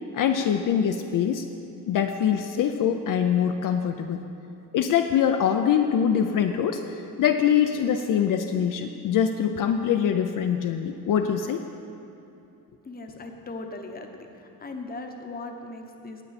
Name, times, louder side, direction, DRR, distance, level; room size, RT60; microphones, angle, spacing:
voice 1, 0.1-1.4 1.9-4.2 4.7-11.6, left 8 dB, 60° left, 5 dB, 0.5 m, -24 dB
voice 2, 12.8-16.2, left 2 dB, 25° left, 4 dB, 0.9 m, -38 dB
18.5 x 8.1 x 4.2 m, 2.7 s
cardioid pair, 165°, 37 cm